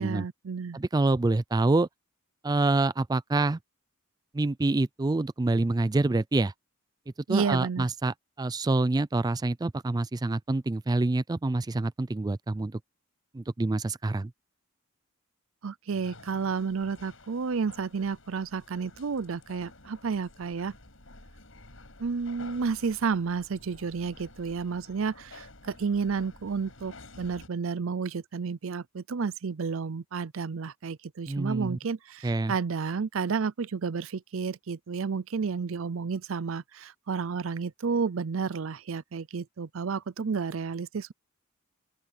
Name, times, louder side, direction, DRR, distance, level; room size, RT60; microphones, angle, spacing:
voice 1, 0.0-0.8 7.3-7.9 15.6-20.7 22.0-41.1, right 5 dB, 70° right, 0.5 m, -31 dB
voice 2, 0.7-1.9 2.4-3.6 4.3-6.5 7.3-12.8 13.3-14.3 31.3-31.8 32.2-32.5, right 2 dB, 20° right, 0.4 m, -26 dB
sound 1, 15.9-27.5, left 2 dB, 70° left, 7.9 m, -51 dB
open air
head